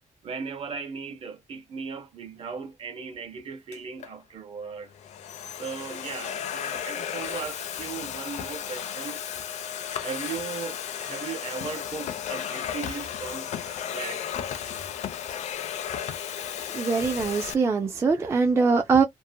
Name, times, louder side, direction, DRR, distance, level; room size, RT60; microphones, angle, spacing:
voice 1, 0.2-4.9 5.6-9.2 10.0-14.4, right 5 dB, 45° right, 0.7 m, -37 dB
Domestic sounds home sounds, 3.7-4.1 4.8-17.5, left 9 dB, 60° left, 0.4 m, -34 dB
voice 2, 16.7-19.0, right 4 dB, 20° right, 0.3 m, -22 dB
2.6 x 2.0 x 2.6 m
wide cardioid pair, 180°, 13 cm